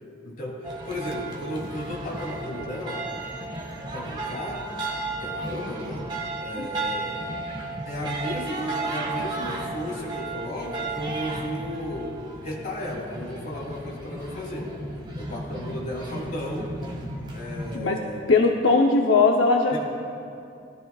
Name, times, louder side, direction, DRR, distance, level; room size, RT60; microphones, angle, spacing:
voice 1, 0.2-3.1 3.9-4.7 5.2-6.1 6.4-7.4 7.9-12.1 12.4-14.7 15.1-16.7 17.3-18.2 19.7-19.8, left 1 dB, 40° left, -4 dB, 3.0 m, -34 dB
sound 1, 0.6-17.8, right 2 dB, 25° right, 1.7 m, -34 dB
voice 2, 18.3-19.8, left 3 dB, 80° left, 1 dB, 0.7 m, -19 dB
19.0 x 13.0 x 2.3 m, 2.5 s
head